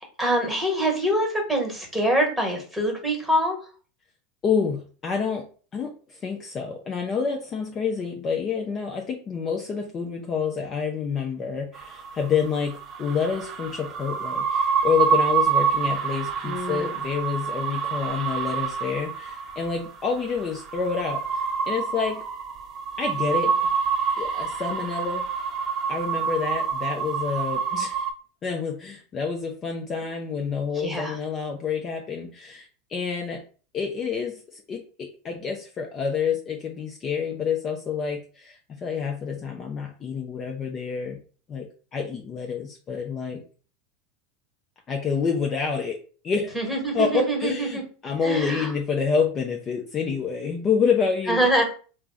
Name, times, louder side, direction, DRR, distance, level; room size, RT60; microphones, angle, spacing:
voice 1, 0.2-3.6 16.4-17.0 30.7-31.2 46.5-47.8 48.2-48.7 51.3-51.6, right 1 dB, ahead, 1 dB, 1.5 m, -25 dB
voice 2, 4.4-5.5 5.7-22.2 23.0-23.5 24.2-25.2 25.9-28.0 28.4-33.4 33.7-41.2 41.5-41.7 41.9-43.4 44.9-46.0 46.2-46.5 46.9-51.5, left 6 dB, 35° left, 2 dB, 0.5 m, -28 dB
sound 1, 11.7-28.1, right 6 dB, 40° right, 0.6 m, -27 dB
3.3 x 2.1 x 3.8 m, 0.39 s
hypercardioid pair, 85°, 0 cm